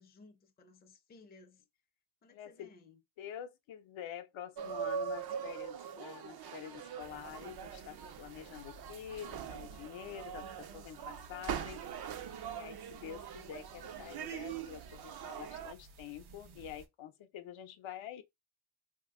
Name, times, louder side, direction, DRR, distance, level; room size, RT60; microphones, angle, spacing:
voice 1, 0.0-1.7 2.2-3.0, left 3 dB, 20° left, 0.5 m, -59 dB
voice 2, 2.3-2.7 3.2-11.8 12.5-18.2, left 10 dB, 70° left, 0.7 m, -47 dB
sound 1, 4.6-15.7, right 8 dB, 50° right, 0.5 m, -42 dB
sound 2, 7.0-16.9, right 3 dB, 90° right, 0.9 m, -56 dB
2.8 x 2.5 x 3.5 m
cardioid pair, 120°, 48 cm